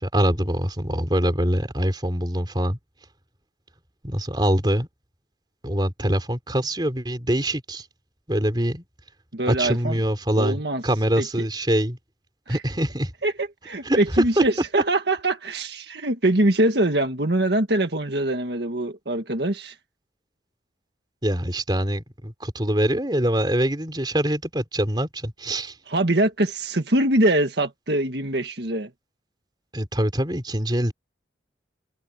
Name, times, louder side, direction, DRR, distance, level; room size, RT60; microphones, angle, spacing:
voice 1, 0.0-2.8 4.0-4.9 5.6-7.9 8.3-8.8 9.5-12.0 12.5-13.1 13.8-14.0 14.4-14.5 21.2-25.7 29.7-30.9, right 1 dB, 25° right, 3.8 m, -24 dB
voice 2, 9.3-10.0 10.4-10.8 11.2-11.3 12.5-12.6 13.2-19.7 25.9-28.9, right 1 dB, 65° right, 1.8 m, -23 dB
head